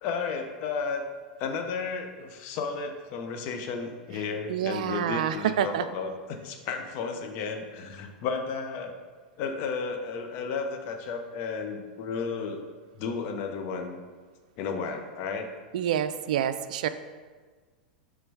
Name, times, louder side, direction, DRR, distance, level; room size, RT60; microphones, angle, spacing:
voice 1, 0.0-1.0 1.4-9.0 9.4-12.6 12.9-14.0 14.6-15.5, left 5 dB, 50° left, 5 dB, 0.8 m, -33 dB
voice 2, 4.5-5.9 15.7-16.9, right 10 dB, 65° right, 11 dB, 0.3 m, -27 dB
6.0 x 3.8 x 4.8 m, 1.4 s
hypercardioid pair, 95°, 5 cm